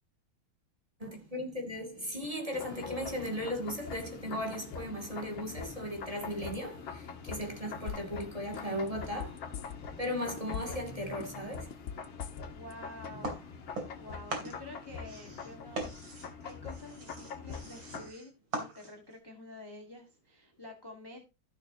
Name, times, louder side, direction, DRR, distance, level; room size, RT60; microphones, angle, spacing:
voice 1, 1.0-9.4 10.0-12.0 13.1-13.2, equal, 15° right, 2.5 m, -37 dB
sound 1, 2.5-18.1, left 6 dB, 80° left, 2.3 m, -44 dB
sound 2, 7.9-8.2 8.5-10.1 10.4-10.9 11.2-12.7 13.0-13.1, left 8 dB, 65° left, 0.7 m, -40 dB
voice 2, 12.5-13.7 14.0-15.9 16.2-21.2, left 1 dB, 15° left, 1.5 m, -49 dB
sound 3, 13.2-14.0 14.3-19.2, right 2 dB, 75° right, 3.9 m, -41 dB
15.0 x 6.7 x 2.8 m
omnidirectional pair, 2.2 m